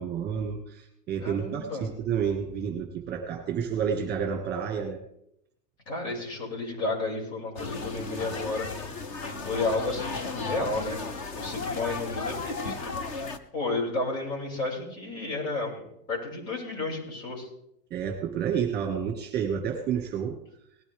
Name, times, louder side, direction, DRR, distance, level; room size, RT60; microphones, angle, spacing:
voice 1, 0.0-5.0 17.9-20.4, right 7 dB, 20° right, 3 dB, 1.8 m, -30 dB
voice 2, 1.2-1.9 5.9-8.7 9.2-11.0 11.3-12.9 13.5-17.5, left 2 dB, 60° left, -1 dB, 6.4 m, -32 dB
sound 1, 7.6-13.4, left 4 dB, 25° left, 0.4 m, -35 dB
18.5 x 11.5 x 3.5 m, 0.78 s
hypercardioid pair, 140°, 49 cm